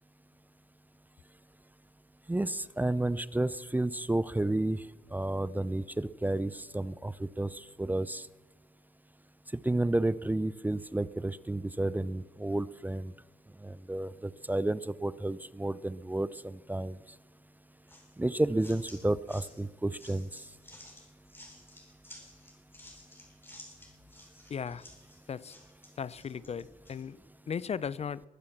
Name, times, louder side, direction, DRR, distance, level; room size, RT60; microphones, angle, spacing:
voice 1, 2.3-4.8 5.1-8.3 9.6-13.1 13.6-17.0 18.2-20.3, right 2 dB, 10° right, 18 dB, 0.4 m, -31 dB
sound 1, 17.9-27.0, left 1 dB, 15° left, 4.7 m, -53 dB
voice 2, 24.5-24.9 25.3-25.6 26.0-27.2 27.5-28.2, left 7 dB, 45° left, 20 dB, 0.5 m, -36 dB
21.5 x 7.5 x 7.2 m, 1.2 s
cardioid pair, 70°, 15 cm